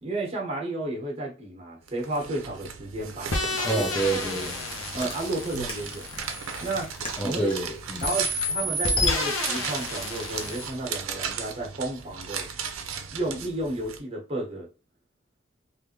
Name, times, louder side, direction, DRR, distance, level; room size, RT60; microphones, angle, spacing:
voice 1, 0.0-3.9 4.9-6.0 6.6-6.9 7.2-7.5 8.0-12.5 13.1-14.7, right 2 dB, 30° right, 1.1 m, -32 dB
sound 1, 1.9-14.0, right 7 dB, 80° right, 0.5 m, -37 dB
sound 2, 3.3-7.6 8.0-10.7, left 2 dB, 85° left, 0.9 m, -30 dB
voice 2, 3.6-4.6 7.2-8.2, right 2 dB, 5° left, 0.4 m, -28 dB
Chewing mastication, 4.7-11.0, left 1 dB, 25° left, 0.8 m, -45 dB
3.5 x 2.5 x 2.9 m
head